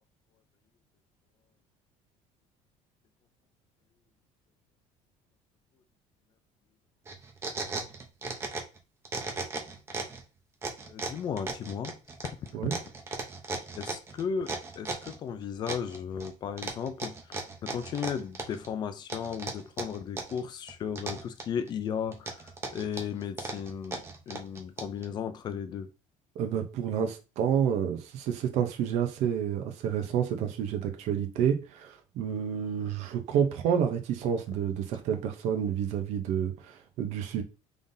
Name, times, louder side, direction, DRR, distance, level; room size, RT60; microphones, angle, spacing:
sound 1, 7.1-8.8 9.0-10.2 10.6-15.2 15.7-16.3 16.6-18.7 19.1-20.4 20.7-21.7 22.1-25.0, right 3 dB, 20° right, 0.7 m, -36 dB
voice 1, 10.9-12.0 12.4-12.7 13.7-25.9, left 7 dB, 35° left, 0.4 m, -35 dB
voice 2, 26.4-37.4, right 8 dB, 55° right, 0.8 m, -29 dB
3.8 x 3.5 x 2.7 m
cardioid pair, 165°, 13 cm